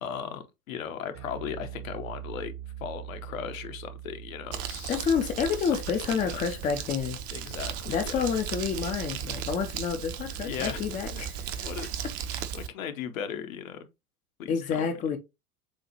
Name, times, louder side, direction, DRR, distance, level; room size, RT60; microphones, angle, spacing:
voice 1, 0.0-2.5 2.8-5.0 5.6-5.8 6.0-6.4 7.3-8.3 10.4-11.2 11.6-12.0 12.3-13.9 14.4-14.9, left 8 dB, 60° left, 0.9 m, -37 dB
Bass guitar, 1.1-7.6, right 11 dB, 75° right, 2.1 m, -44 dB
Crumpling crinkling, 4.5-12.7, right 9 dB, 45° right, 0.7 m, -36 dB
voice 2, 4.9-7.2 7.9-11.7 14.5-15.2, left 6 dB, 15° left, 0.5 m, -29 dB
7.1 x 2.4 x 2.8 m
figure-of-eight pair, 85°, 47 cm